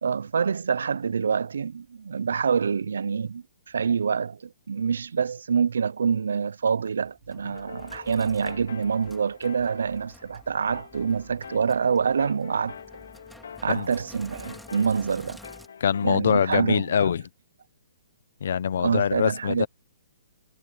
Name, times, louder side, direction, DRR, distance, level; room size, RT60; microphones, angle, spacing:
voice 1, 0.0-12.7 13.6-15.4 16.0-17.1 18.8-19.7, right 6 dB, 85° right, 0.4 m, -26 dB
Sink (filling or washing), 6.9-15.7, equal, ahead, 2.5 m, -50 dB
sound 1, 7.5-16.2, left 7 dB, 70° left, 2.3 m, -45 dB
voice 2, 15.8-17.2 18.4-19.7, left 8 dB, 50° left, 0.9 m, -24 dB
hypercardioid pair, 180°, 0 cm